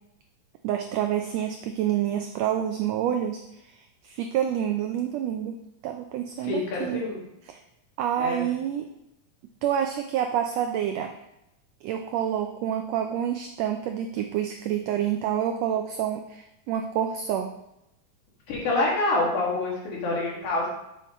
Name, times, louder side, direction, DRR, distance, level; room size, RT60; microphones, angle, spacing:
voice 1, 0.6-3.6 4.0-7.1 7.5-7.6 8.0-8.9 9.6-11.2 11.8-17.5, right 10 dB, 85° right, 5 dB, 1.5 m, -28 dB
voice 2, 6.5-7.2 8.2-8.4 18.5-20.7, left 2 dB, 75° left, -4 dB, 3.3 m, -26 dB
7.2 x 7.0 x 3.0 m, 0.86 s
omnidirectional pair, 3.5 m